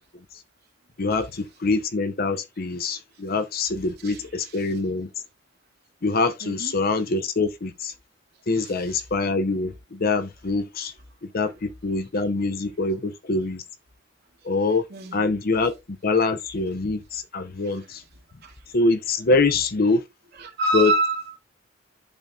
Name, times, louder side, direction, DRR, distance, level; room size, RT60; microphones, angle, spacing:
voice 1, 1.0-5.1 6.0-7.9 8.5-10.9 11.3-13.6 14.4-14.8 15.1-18.0 18.7-20.0 20.7-20.9, left 3 dB, 50° left, 0.7 m, -24 dB
voice 2, 4.0-4.7 6.4-6.8 8.5-9.0 11.4-11.5 14.9-15.3 17.6-18.0 18.4-18.8 20.3-21.4, right 2 dB, 55° right, 2.3 m, -29 dB
12.0 x 4.1 x 2.4 m
head